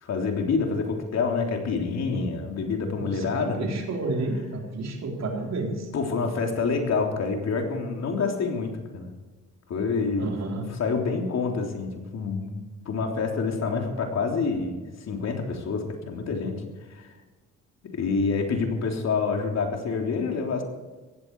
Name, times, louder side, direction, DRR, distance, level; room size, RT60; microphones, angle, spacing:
voice 1, 0.0-3.6 5.9-9.1 9.7-12.6 12.9-16.6 16.9-17.1 17.9-20.6, left 4 dB, 60° left, 2 dB, 3.5 m, -27 dB
voice 2, 3.0-5.9 10.2-10.7, right 2 dB, 60° right, 1 dB, 4.1 m, -30 dB
17.0 x 15.0 x 4.8 m, 1.3 s
cardioid pair, 90°, 30 cm